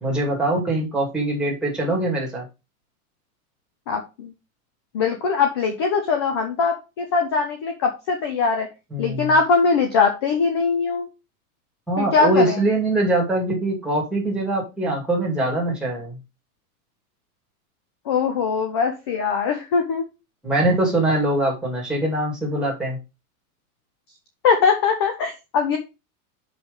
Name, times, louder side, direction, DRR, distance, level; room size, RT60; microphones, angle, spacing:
voice 1, 0.0-2.4 8.9-9.3 11.9-16.2 20.4-23.0, right 1 dB, ahead, -3 dB, 2.4 m, -23 dB
voice 2, 3.9-4.3 4.9-8.7 9.0-11.1 12.0-12.6 18.1-20.0 24.4-25.8, left 5 dB, 20° left, 5 dB, 0.4 m, -21 dB
6.2 x 5.3 x 5.1 m, 0.27 s
supercardioid pair, 170°, 44 cm